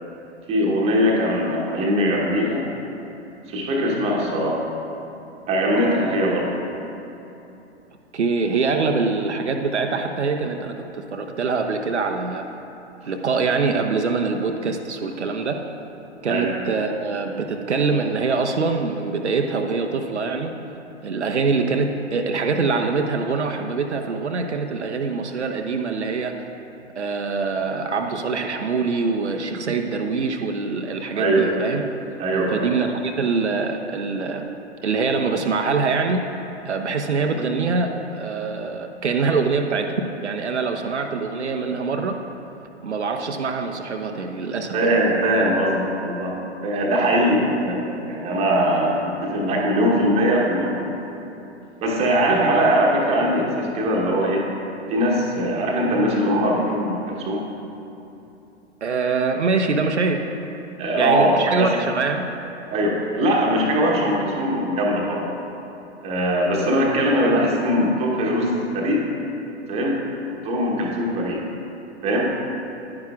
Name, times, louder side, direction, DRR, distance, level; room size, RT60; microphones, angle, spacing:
voice 1, 0.5-2.7 3.5-4.6 5.5-6.5 16.3-16.5 31.1-31.5 32.2-32.7 44.7-46.3 46.6-50.9 51.8-54.4 54.9-57.4 60.8-61.3 61.6-61.7 62.7-65.3 66.0-69.1 69.7-70.0 70.4-71.4 72.0-72.2, equal, 20° right, -2 dB, 1.1 m, -21 dB
voice 2, 8.1-12.5 13.1-15.6 16.2-20.5 21.0-26.3 27.0-31.8 32.5-34.4 34.8-36.2 36.6-39.9 40.2-42.2 42.8-45.0 58.8-60.2 61.0-62.3, right 4 dB, 75° right, 4 dB, 0.6 m, -24 dB
10.5 x 9.6 x 2.4 m, 2.9 s
figure-of-eight pair, 110°, 35 cm